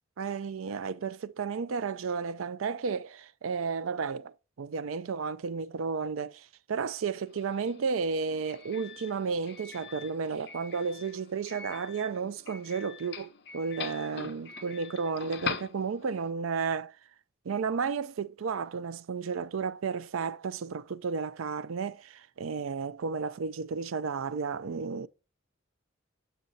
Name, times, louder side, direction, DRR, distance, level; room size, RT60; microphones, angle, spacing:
voice 1, 0.2-16.9 17.5-25.1, right 5 dB, 85° right, 0.4 m, -33 dB
Doorbell, 7.3-16.3, left 6 dB, 55° left, 0.9 m, -43 dB
7.5 x 6.8 x 2.7 m
head